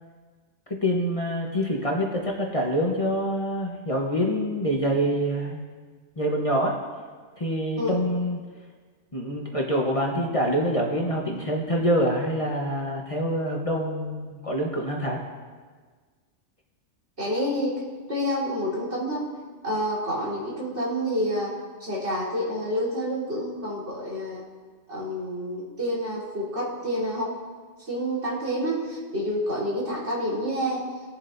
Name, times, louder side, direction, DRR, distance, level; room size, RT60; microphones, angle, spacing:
voice 1, 0.8-5.6 6.2-6.8 7.4-8.4 9.1-15.2, equal, 30° left, -2 dB, 1.1 m, -26 dB
voice 2, 17.2-17.8 18.1-19.2 19.6-21.5 21.8-24.4 24.9-27.3 27.8-30.8, equal, 65° right, -7 dB, 4.1 m, -28 dB
20.0 x 7.3 x 2.6 m, 1.5 s
omnidirectional pair, 1.2 m